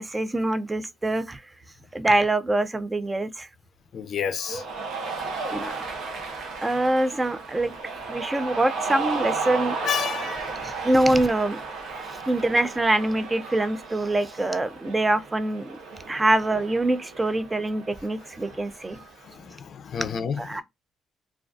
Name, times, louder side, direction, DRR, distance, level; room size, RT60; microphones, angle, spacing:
voice 1, 0.0-1.4 1.9-3.5 5.5-5.7 6.6-7.7 8.1-9.8 10.6-11.6 12.3-15.8 16.1-19.0 20.4-20.6, right 2 dB, 20° right, 0.3 m, -24 dB
voice 2, 3.9-4.6 9.8-10.8 16.0-16.2 19.2-20.6, left 7 dB, 60° left, 0.4 m, -31 dB
Cheering, 4.4-19.2, right 4 dB, 80° right, 0.6 m, -34 dB
2.3 x 2.3 x 2.4 m
cardioid pair, 90°, 0 cm